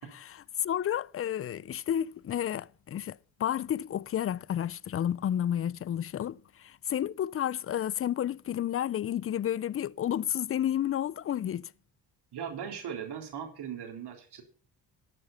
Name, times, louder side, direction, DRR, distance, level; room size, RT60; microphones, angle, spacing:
voice 1, 0.1-11.7, left 10 dB, 35° left, 0.5 m, -31 dB
voice 2, 12.3-14.4, right 8 dB, 65° right, 3.9 m, -39 dB
13.0 x 7.5 x 5.7 m
cardioid pair, 80°, 42 cm